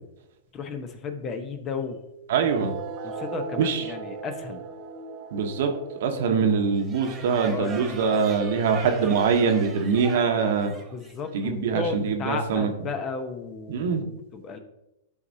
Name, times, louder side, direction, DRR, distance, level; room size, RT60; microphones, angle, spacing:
voice 1, 0.5-2.0 3.0-4.6 7.5-8.2 10.9-14.6, left 5 dB, 30° left, 7 dB, 0.8 m, -34 dB
voice 2, 2.3-2.7 3.6-3.8 5.3-5.7 6.0-10.7 11.3-12.7 13.7-14.0, right 5 dB, 65° right, 5 dB, 1.0 m, -23 dB
sound 1, 2.5-9.5, right 5 dB, 45° right, 0.8 m, -39 dB
sound 2, 6.8-11.4, right 5 dB, 25° right, 1.4 m, -40 dB
11.0 x 4.1 x 2.7 m, 0.89 s
hypercardioid pair, 120°, 0 cm